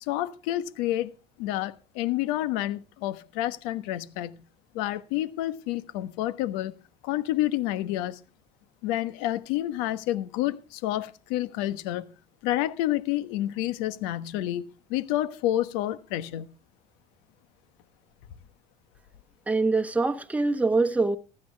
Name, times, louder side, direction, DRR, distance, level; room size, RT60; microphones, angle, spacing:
voice 1, 0.0-1.1 1.4-4.4 4.7-6.7 7.0-8.2 8.8-12.1 12.4-16.5, left 14 dB, 75° left, 1.3 m, -29 dB
voice 2, 19.5-21.2, right 3 dB, 5° right, 1.1 m, -24 dB
15.5 x 12.5 x 3.5 m
supercardioid pair, 90°, 19 cm